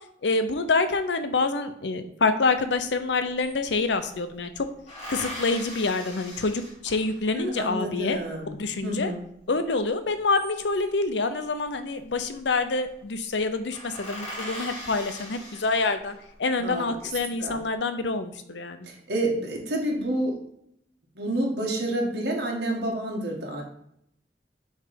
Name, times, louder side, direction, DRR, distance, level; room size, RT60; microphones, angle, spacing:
voice 1, 0.2-4.7 5.1-8.2 8.5-9.1 9.5-18.9, left 3 dB, 85° left, 9 dB, 0.7 m, -26 dB
sound 1, 2.7-2.8 3.1-4.1 4.9-7.4 10.0-11.0 12.2-12.6 12.9-13.0 13.3-13.4 13.7-16.3 16.8-17.5, equal, 40° left, 2.8 m, -40 dB
voice 2, 7.3-8.5 8.8-9.2 16.6-16.9 17.4-17.6 18.8-20.4 21.1-23.6, right 1 dB, 70° right, -1 dB, 1.4 m, -29 dB
7.1 x 3.3 x 5.2 m, 0.73 s
head